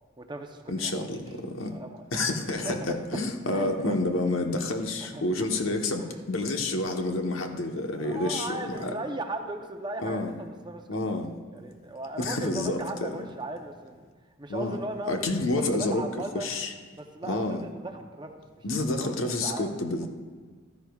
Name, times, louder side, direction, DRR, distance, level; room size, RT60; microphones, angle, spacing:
voice 1, 0.2-0.9 1.7-2.0 2.6-3.2 3.5-4.0 5.0-5.2 6.0-6.2 8.0-11.1 11.5-14.1 14.4-16.5 16.9-18.6 19.0-19.1 19.4-19.7 20.0-20.1, right 2 dB, 20° right, 4 dB, 0.7 m, -37 dB
voice 2, 0.7-1.7 2.1-8.9 10.0-10.3 10.9-11.3 12.2-13.2 14.5-14.8 15.1-16.0 16.3-16.7 17.3-17.6 18.6-20.1, left 2 dB, 75° left, 4 dB, 1.1 m, -29 dB
15.5 x 13.0 x 2.4 m, 1.5 s
head